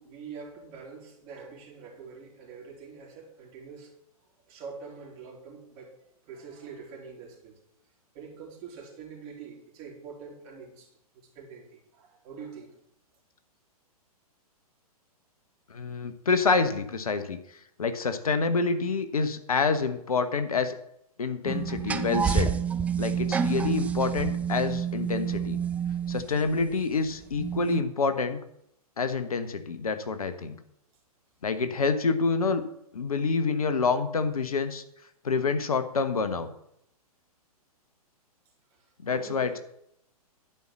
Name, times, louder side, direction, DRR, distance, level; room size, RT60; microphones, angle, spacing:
voice 1, 0.0-3.9 4.2-6.0 6.2-7.6 8.1-12.8 38.7-39.6, right 5 dB, 30° right, -1 dB, 3.8 m, -45 dB
voice 2, 15.7-17.4 17.8-20.8 21.2-22.5 23.0-25.6 26.1-28.4 29.0-30.6 31.4-32.6 32.9-34.8 35.2-36.5 39.0-39.5, left 4 dB, 65° left, 10 dB, 1.2 m, -27 dB
sound 1, 21.5-26.7 27.4-27.8, right 7 dB, 5° right, 0.4 m, -28 dB
11.0 x 5.6 x 7.7 m, 0.75 s
figure-of-eight pair, 115°, 20 cm